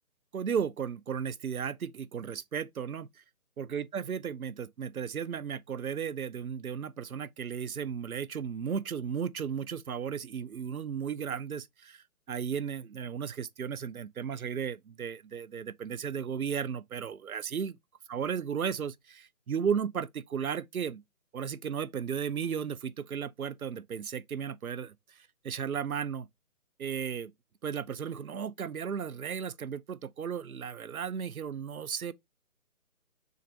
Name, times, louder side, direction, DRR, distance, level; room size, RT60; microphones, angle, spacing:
voice 1, 0.3-3.1 3.6-17.7 18.1-21.0 21.3-24.9 25.4-26.3 26.8-27.3 27.6-32.1, right 7 dB, 70° right, 0.9 m, -35 dB
6.5 x 2.8 x 5.3 m
figure-of-eight pair, 160°, 45 cm